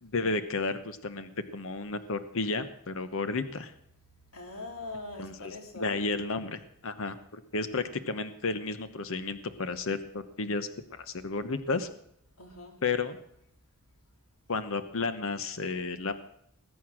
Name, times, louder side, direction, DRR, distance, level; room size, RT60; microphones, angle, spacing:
voice 1, 0.0-3.7 5.2-11.9 12.8-13.2 14.5-16.1, left 3 dB, 65° left, 11 dB, 1.0 m, -32 dB
voice 2, 4.3-6.0 12.4-12.8, left 2 dB, 80° left, 4 dB, 3.5 m, -42 dB
20.5 x 9.3 x 6.3 m, 0.72 s
head